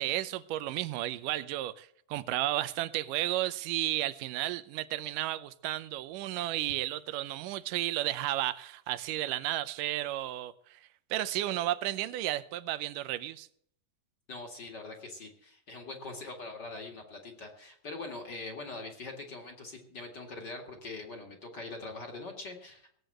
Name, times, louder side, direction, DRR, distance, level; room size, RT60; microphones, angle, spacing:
voice 1, 0.0-10.8 11.1-13.5, right 15 dB, 80° right, 14 dB, 2.3 m, -33 dB
voice 2, 14.3-22.9, left 3 dB, 35° left, 2 dB, 2.4 m, -43 dB
18.0 x 8.1 x 7.8 m, 0.66 s
omnidirectional pair, 3.7 m